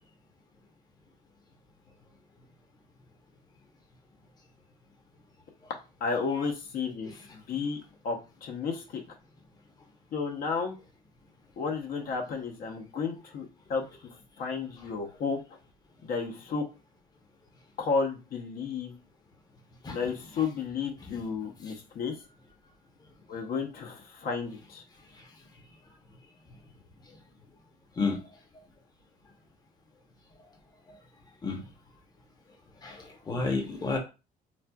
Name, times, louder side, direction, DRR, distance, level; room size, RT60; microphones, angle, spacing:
voice 1, 6.0-7.8 8.0-9.0 10.1-10.7 11.6-13.8 14.4-15.4 16.0-16.6 17.8-18.9 19.9-22.1 23.3-24.8, left 5 dB, 60° left, 2 dB, 0.8 m, -32 dB
voice 2, 32.8-34.0, left 4 dB, 25° left, 2 dB, 0.8 m, -31 dB
4.1 x 2.3 x 2.3 m, 0.29 s
cardioid pair, 110°, 17 cm